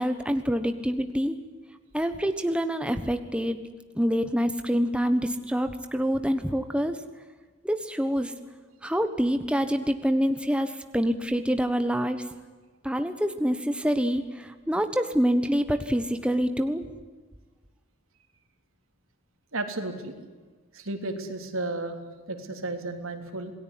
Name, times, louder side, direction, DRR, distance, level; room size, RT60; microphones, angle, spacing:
voice 1, 0.0-1.4 1.9-3.6 3.9-7.0 7.6-8.3 8.8-12.2 12.8-16.8, equal, 5° right, 8 dB, 1.3 m, -26 dB
voice 2, 19.5-20.2 20.7-22.0 22.3-23.5, right 2 dB, 90° right, 6 dB, 3.5 m, -33 dB
27.5 x 19.0 x 9.9 m, 1.3 s
head